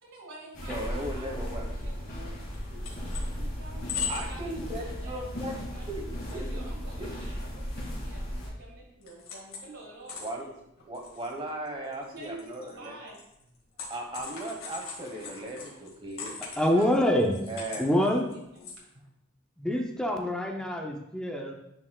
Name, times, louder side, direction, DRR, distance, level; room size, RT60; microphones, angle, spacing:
voice 1, 0.0-5.9 6.3-10.5 11.8-13.2 16.5-16.9 17.8-18.7, right 2 dB, 75° right, -3 dB, 1.8 m, -48 dB
sound 1, 0.5-8.5, equal, 45° left, 2.3 m, -36 dB
voice 2, 0.7-1.6 4.1-5.5 5.9-6.7 6.9-7.1 10.2-10.4 10.9-12.9 13.9-16.4 17.5-18.1, right 1 dB, 25° right, 1 dB, 1.1 m, -37 dB
sound 2, 2.3-2.4 2.5-3.3 3.7-4.4 4.8-5.0 5.4-5.5 5.8-6.4 6.7-6.8 7.3-8.4 8.7-9.7 10.1-18.7, left 6 dB, 80° left, 1.8 m, -40 dB
voice 3, 16.6-17.4 17.8-18.3 19.6-21.5, left 1 dB, 5° left, 2 dB, 0.5 m, -26 dB
9.7 x 4.3 x 2.3 m, 0.82 s
head